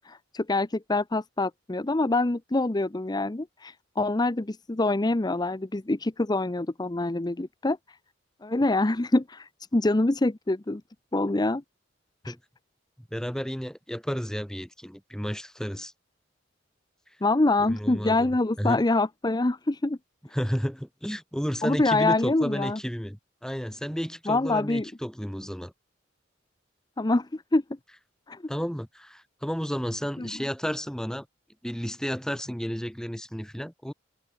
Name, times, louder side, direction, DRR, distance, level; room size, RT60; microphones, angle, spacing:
voice 1, 0.0-7.8 8.4-10.8 11.1-11.6 12.2-12.3 17.2-20.0 21.6-22.8 24.3-24.9 27.0-27.6 28.3-28.4 30.2-30.3, left 2 dB, 20° left, 0.7 m, -25 dB
voice 2, 13.1-15.9 17.7-18.8 20.3-25.7 28.5-31.3 31.6-33.9, equal, 5° left, 3.9 m, -32 dB
head